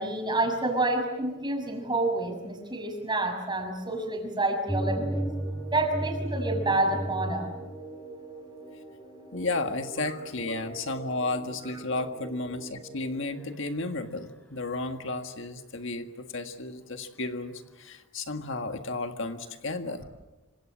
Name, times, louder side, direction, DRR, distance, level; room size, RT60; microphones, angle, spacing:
voice 1, 0.0-5.3 5.7-7.5, right 2 dB, 20° right, 4 dB, 6.2 m, -28 dB
sound 1, 4.7-14.1, right 1 dB, 5° left, 4.2 m, -37 dB
voice 2, 9.3-20.0, left 2 dB, 55° left, 6 dB, 1.7 m, -33 dB
27.5 x 26.0 x 7.5 m, 1.1 s
head